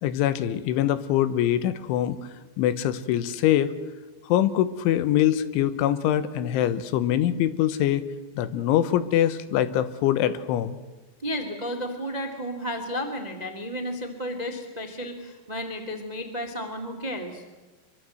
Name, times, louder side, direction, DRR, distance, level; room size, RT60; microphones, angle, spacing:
voice 1, 0.0-2.2 2.6-3.7 4.3-8.0 8.4-10.8, left 11 dB, 85° left, 13 dB, 3.5 m, -23 dB
voice 2, 11.2-17.4, equal, 40° right, 6 dB, 0.5 m, -32 dB
25.5 x 23.5 x 7.9 m, 1.2 s
omnidirectional pair, 5.4 m